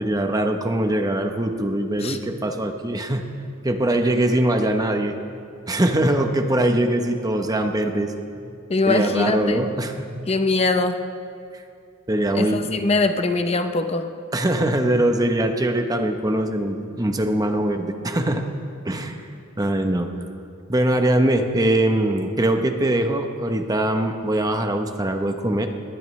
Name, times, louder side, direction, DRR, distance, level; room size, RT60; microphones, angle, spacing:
voice 1, 0.0-3.3 3.6-5.4 5.7-8.1 8.8-10.3 11.5-11.6 12.1-12.8 14.3-18.5 18.8-19.3 19.6-20.1 20.7-25.7, right 1 dB, 20° right, 5 dB, 0.9 m, -22 dB
voice 2, 8.7-9.6 10.3-11.0 12.3-14.1, left 3 dB, 30° left, 7 dB, 0.8 m, -22 dB
20.5 x 19.0 x 3.2 m, 2.4 s
head